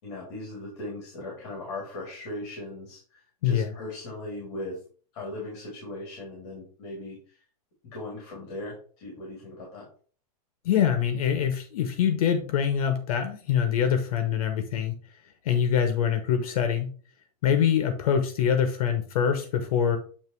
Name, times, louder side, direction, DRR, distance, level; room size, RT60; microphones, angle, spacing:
voice 1, 0.0-4.8 5.1-7.4 7.8-9.9, left 2 dB, 45° left, -3 dB, 3.2 m, -38 dB
voice 2, 10.6-14.9 15.4-16.9 17.4-20.0, left 8 dB, 65° left, 7 dB, 1.1 m, -24 dB
9.0 x 3.0 x 4.6 m, 0.42 s
supercardioid pair, 180°, 19 cm